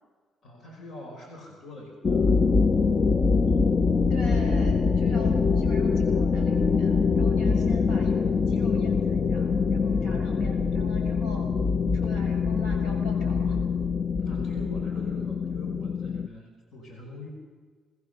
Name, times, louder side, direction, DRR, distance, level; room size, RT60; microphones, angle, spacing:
voice 1, 0.4-2.4 14.2-17.3, left 1 dB, 65° left, 1 dB, 5.0 m, -43 dB
sound 1, 2.0-16.3, left 5 dB, 35° left, 0.6 m, -24 dB
voice 2, 4.1-8.2 8.5-11.5 11.9-13.6, left 1 dB, 85° left, 2 dB, 6.6 m, -42 dB
23.0 x 19.5 x 6.8 m, 1.5 s
cardioid pair, 90°, 0 cm